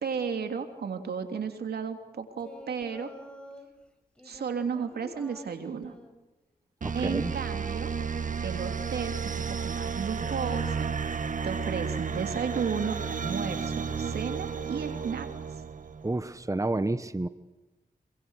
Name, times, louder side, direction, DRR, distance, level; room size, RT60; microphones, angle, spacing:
voice 1, 0.0-3.1 4.2-5.9 6.9-7.9 8.4-10.9 11.4-15.6, right 6 dB, 85° right, 6 dB, 3.0 m, -33 dB
Singing, 2.3-3.7 4.2-6.2 7.0-7.5, left 1 dB, 5° left, 5.2 m, -49 dB
voice 2, 6.8-7.3 16.0-17.3, right 2 dB, 20° right, 13 dB, 1.3 m, -30 dB
sound 1, 6.8-16.2, right 6 dB, 55° right, 1.6 m, -32 dB
26.5 x 24.0 x 6.5 m, 1.1 s
cardioid pair, 60°, 16 cm